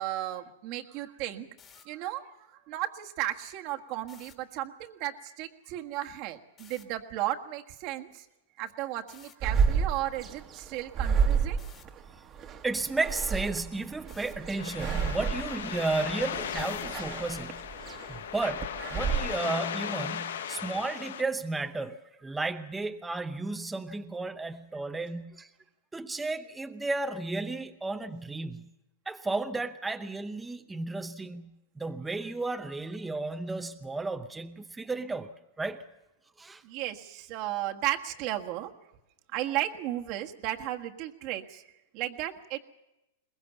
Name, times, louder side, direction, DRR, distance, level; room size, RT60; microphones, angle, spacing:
voice 1, 0.0-1.5 1.8-8.3 8.6-11.6 36.6-38.7 39.3-42.6, right 14 dB, 45° right, 1.5 m, -35 dB
sound 1, 1.5-1.8 4.0-4.3 6.6-6.8 9.1-9.3 11.6-11.8 14.1-14.3 16.6-17.0, left 7 dB, 25° left, 2.4 m, -54 dB
sound 2, 9.4-19.2, right 6 dB, 25° right, 1.5 m, -31 dB
voice 2, 12.6-17.6 18.1-25.5 25.9-28.7 29.1-35.3 35.6-35.8 36.4-36.6, right 3 dB, 10° right, 0.8 m, -33 dB
sound 3, 14.6-21.2, left 8 dB, 85° left, 1.1 m, -36 dB
22.0 x 20.5 x 7.1 m
hypercardioid pair, 140°, 0 cm